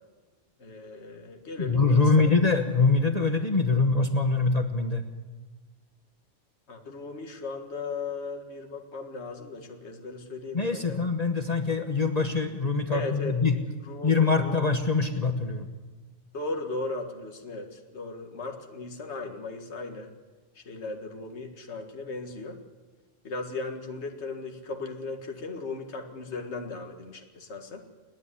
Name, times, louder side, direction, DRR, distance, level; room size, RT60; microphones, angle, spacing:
voice 1, 0.6-2.3 6.7-11.1 12.9-13.4 13.8-14.6 16.3-20.1 20.6-22.6 23.2-27.8, left 3 dB, 60° left, 4 dB, 2.1 m, -37 dB
voice 2, 1.6-5.0 10.5-13.6 14.0-15.7, left 4 dB, 35° left, 6 dB, 1.2 m, -24 dB
29.0 x 10.5 x 9.7 m, 1.3 s
omnidirectional pair, 1.3 m